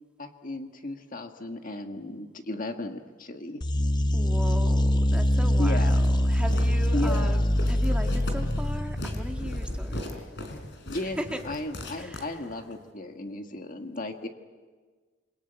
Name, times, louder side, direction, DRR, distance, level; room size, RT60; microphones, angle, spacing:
voice 1, 0.2-3.6 5.6-5.9 6.9-7.5 10.8-11.2 11.4-14.3, left 2 dB, 45° left, 5 dB, 1.6 m, -35 dB
sound 1, 3.6-10.1, left 1 dB, 20° left, 0.8 m, -24 dB
voice 2, 4.1-10.2 11.2-11.4 12.0-12.4, equal, 5° right, 2 dB, 2.1 m, -38 dB
Walk footsteps, 5.9-12.8, left 1 dB, 65° left, 4.2 m, -40 dB
28.0 x 22.5 x 9.0 m, 1.4 s
head